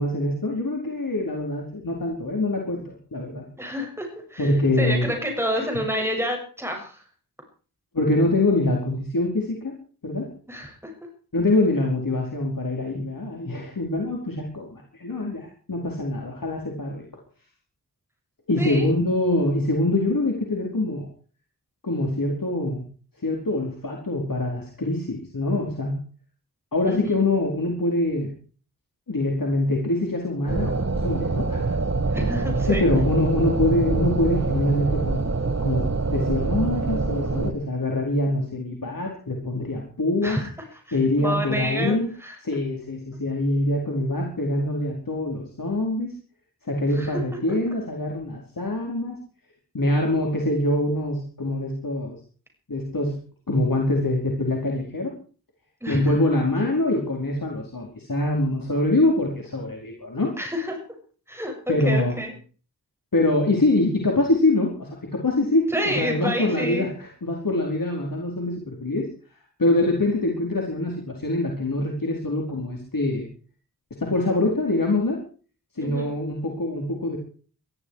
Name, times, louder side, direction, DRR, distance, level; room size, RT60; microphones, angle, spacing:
voice 1, 0.0-3.4 4.4-5.1 5.5-5.6 7.9-9.7 10.0-10.3 11.3-17.1 18.5-21.1 21.8-22.8 23.2-26.0 26.7-28.3 29.1-31.8 32.1-32.2 32.7-35.3 35.6-40.4 40.9-42.1 42.4-46.1 46.6-49.2 49.7-52.2 52.7-53.2 53.5-55.1 55.9-60.3 61.7-62.2 63.1-69.1 69.6-73.3 74.0-75.2 75.8-77.2, left 2 dB, 60° left, 0 dB, 4.7 m, -24 dB
voice 2, 3.6-7.0 10.5-10.9 18.6-18.9 26.9-27.2 32.1-32.8 40.2-40.5 40.9-42.4 46.9-47.2 47.5-47.6 55.8-56.1 60.4-60.8 61.3-61.5 61.8-62.3 65.7-66.9 75.8-76.1, equal, 5° right, 2 dB, 7.1 m, -29 dB
Dungeon Air, 30.5-37.5, right 3 dB, 40° right, 2.0 m, -25 dB
21.0 x 14.0 x 4.9 m, 0.41 s
wide cardioid pair, 65°, 38 cm